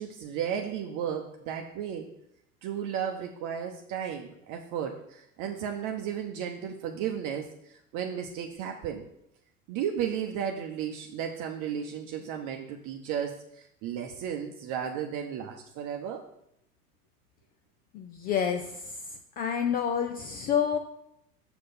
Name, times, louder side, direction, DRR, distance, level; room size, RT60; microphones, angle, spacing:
voice 1, 0.0-2.1 2.6-9.0 9.7-16.2, right 8 dB, 45° right, 3 dB, 0.9 m, -34 dB
voice 2, 17.9-19.0 19.4-20.8, left 7 dB, 20° left, 5 dB, 0.3 m, -28 dB
6.8 x 6.4 x 4.3 m, 0.78 s
hypercardioid pair, 85°, 46 cm